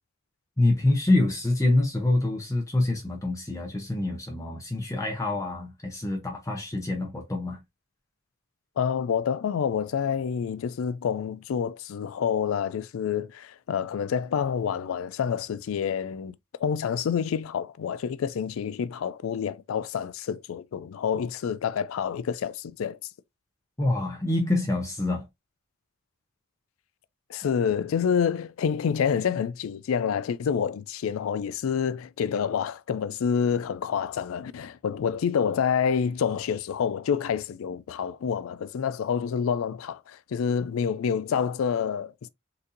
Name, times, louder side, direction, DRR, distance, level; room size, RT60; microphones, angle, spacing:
voice 1, 0.6-7.6 23.8-25.3, left 2 dB, 15° left, 0.6 m, -26 dB
voice 2, 8.8-16.3 16.6-23.0 27.3-42.3, left 7 dB, 85° left, 0.3 m, -28 dB
4.0 x 2.6 x 2.6 m
head